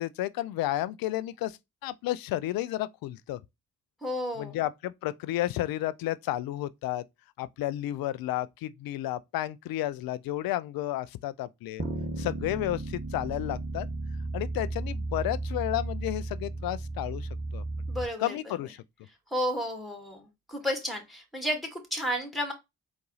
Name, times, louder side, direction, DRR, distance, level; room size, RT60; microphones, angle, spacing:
voice 1, 0.0-3.4 4.4-7.0 7.4-11.8 12.2-13.9 14.3-17.6 18.2-18.8, left 14 dB, 65° left, 0.5 m, -32 dB
voice 2, 4.0-4.6 17.9-18.6 19.3-22.5, equal, ahead, 2.0 m, -32 dB
sound 1, 11.8-18.1, right 2 dB, 25° right, 1.1 m, -34 dB
4.0 x 2.6 x 3.9 m
hypercardioid pair, 40°, 38 cm